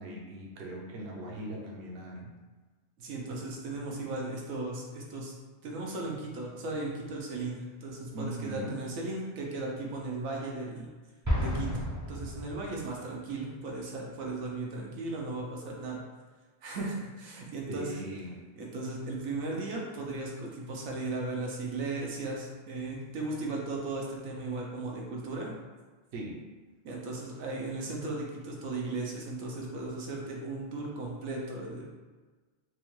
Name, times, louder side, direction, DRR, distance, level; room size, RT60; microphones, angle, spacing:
voice 1, 0.0-2.3 8.1-8.8 17.7-18.4 26.1-26.4, right 1 dB, 60° right, -3 dB, 0.9 m, -39 dB
voice 2, 3.0-5.3 5.6-10.9 11.4-16.0 16.6-17.9 18.6-25.5 26.8-31.9, right 2 dB, 80° right, -2 dB, 1.1 m, -36 dB
Explosion, 11.2-13.1, equal, 25° right, 0.4 m, -32 dB
4.3 x 2.3 x 3.1 m, 1.3 s
omnidirectional pair, 1.4 m